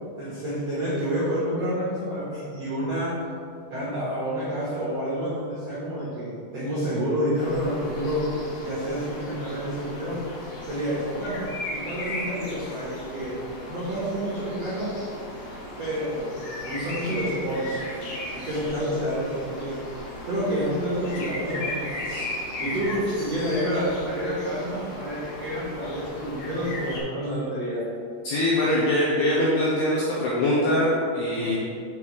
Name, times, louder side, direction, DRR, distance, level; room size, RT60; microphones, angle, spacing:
voice 1, 0.2-3.1 3.7-8.4 8.6-10.2 10.6-11.4 11.7-13.3 13.7-14.9 15.8-17.8 18.3-19.7 20.3-22.3 22.6-27.8 31.3-31.6, equal, 70° right, -10 dB, 1.5 m, -29 dB
sound 1, 7.3-27.0, left 1 dB, 60° left, 2.8 m, -36 dB
voice 2, 28.2-31.6, left 1 dB, 80° left, -6 dB, 2.4 m, -23 dB
7.3 x 5.2 x 4.8 m, 2.3 s
omnidirectional pair, 5.9 m